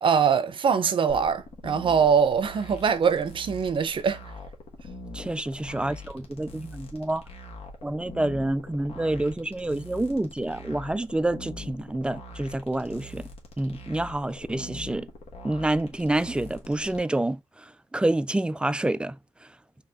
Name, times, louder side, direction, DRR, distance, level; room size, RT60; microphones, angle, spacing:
voice 1, 0.0-4.2, right 6 dB, 50° right, 0.7 m, -23 dB
sound 1, 1.1-17.0, left 2 dB, 70° left, 1.4 m, -43 dB
voice 2, 5.1-7.2 7.8-13.2 13.6-15.1 15.4-17.4 17.9-19.2, right 1 dB, 10° right, 0.3 m, -28 dB
4.4 x 2.9 x 3.5 m
cardioid pair, 105°, 11 cm